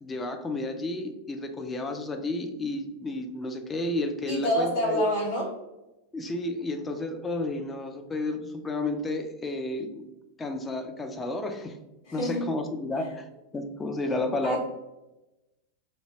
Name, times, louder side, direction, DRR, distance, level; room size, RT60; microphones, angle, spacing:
voice 1, 0.0-5.0 6.1-10.1 10.4-11.8 12.1-14.6, left 2 dB, 15° left, 5 dB, 0.4 m, -32 dB
voice 2, 4.3-5.5 12.0-12.4 14.4-14.6, equal, 60° left, -9 dB, 1.2 m, -27 dB
2.8 x 2.7 x 2.9 m, 0.98 s
figure-of-eight pair, 90°, 0 cm